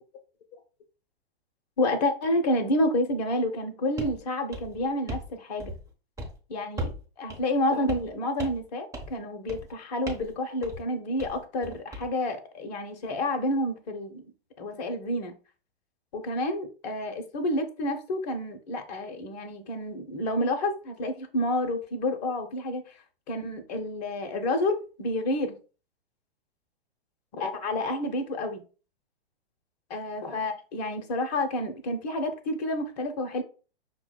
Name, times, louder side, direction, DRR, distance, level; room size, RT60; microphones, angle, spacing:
voice 1, 1.8-5.7 6.5-14.2 14.6-15.3 16.1-22.8 23.3-25.5 27.3-28.6 29.9-33.4, left 1 dB, 40° left, 5 dB, 0.8 m, -29 dB
sound 1, 4.0-4.2 4.5-5.3 5.6-5.9 6.2-6.4 6.8-7.0 7.3-7.4 7.9-8.1 8.4-8.7 8.9-9.2 9.5-9.7 10.1-10.3 10.6-10.8 11.2-12.1, right 1 dB, 10° right, 0.9 m, -37 dB
5.7 x 2.2 x 3.8 m, 0.36 s
figure-of-eight pair, 110°, 31 cm